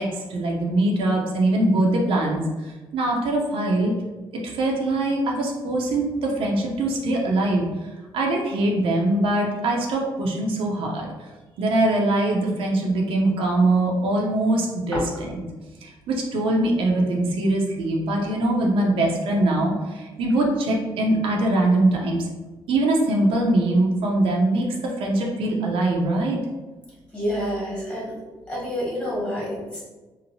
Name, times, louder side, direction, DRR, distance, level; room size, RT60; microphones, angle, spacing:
voice 1, 0.0-2.4 2.9-3.9 4.4-7.7 8.1-11.1 11.6-15.4 15.8-22.3 22.7-26.4, right 2 dB, 80° right, -1 dB, 0.5 m, -22 dB
voice 2, 27.1-28.1 28.5-29.8, equal, 10° left, -5 dB, 1.2 m, -28 dB
2.9 x 2.1 x 2.6 m, 1.2 s
cardioid pair, 85°, 9 cm